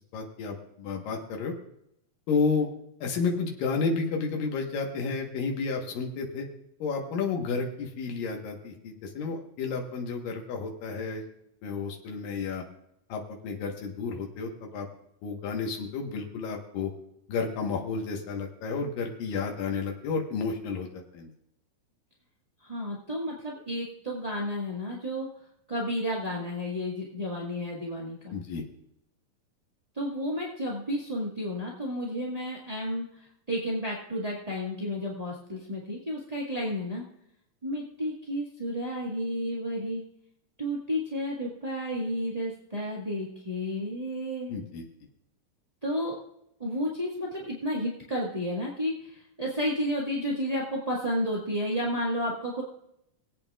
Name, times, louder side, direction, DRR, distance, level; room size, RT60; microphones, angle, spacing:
voice 1, 0.1-1.5 2.3-2.7 3.0-6.5 6.8-11.3 11.6-12.6 13.1-14.9 15.2-16.9 17.3-21.3 28.3-28.6 44.5-44.8, left 4 dB, 75° left, 1 dB, 3.1 m, -31 dB
voice 2, 22.6-25.3 25.7-28.3 29.9-37.0 37.6-40.0 40.6-44.5 45.8-46.1 46.6-52.6, equal, 25° right, -5 dB, 0.9 m, -32 dB
23.0 x 8.5 x 2.4 m, 0.78 s
omnidirectional pair, 4.0 m